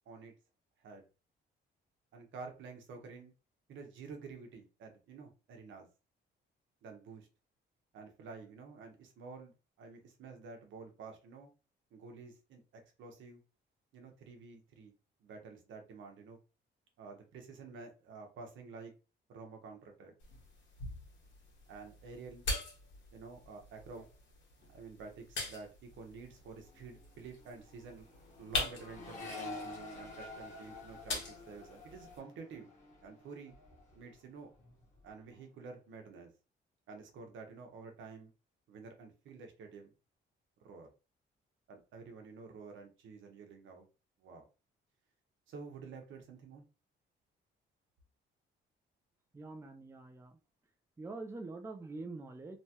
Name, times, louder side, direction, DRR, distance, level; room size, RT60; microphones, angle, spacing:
voice 1, 2.1-3.3 3.7-5.9 6.8-7.3 7.9-11.5 11.9-13.4 13.9-14.9 15.2-16.4 17.0-18.9 19.3-20.1 21.7-22.4 23.1-24.1 24.7-28.1 28.4-32.7 33.0-33.5 33.9-34.5 35.0-36.3 36.9-38.3 38.7-39.9 40.6-40.9 41.7-43.9 44.2-44.5 45.5-46.6, right 4 dB, 75° right, 3 dB, 0.9 m, -50 dB
sound 1, 20.2-32.2, left 3 dB, 70° left, 1.3 m, -44 dB
Accelerating revving vroom, 26.1-26.4 26.6-34.2 34.5-35.1, left 3 dB, 35° left, 1.3 m, -49 dB
voice 2, 49.3-50.4 51.0-52.6, right 3 dB, 15° right, 5 dB, 0.4 m, -45 dB
3.0 x 2.2 x 2.8 m, 0.32 s
cardioid pair, 90°, 20 cm